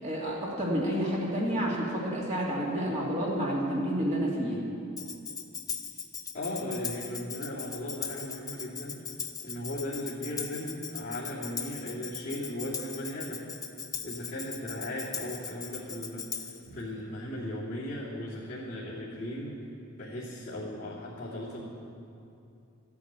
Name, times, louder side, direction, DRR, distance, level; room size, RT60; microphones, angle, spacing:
voice 1, 0.0-4.6, equal, 35° right, -4 dB, 2.5 m, -29 dB
Tambourine, 5.0-16.7, left 6 dB, 15° left, 0.6 m, -39 dB
voice 2, 6.3-8.9 9.4-13.5 14.0-16.2 16.6-19.6 19.9-21.6, left 1 dB, 35° left, -10 dB, 2.7 m, -37 dB
13.5 x 9.4 x 8.8 m, 2.6 s
head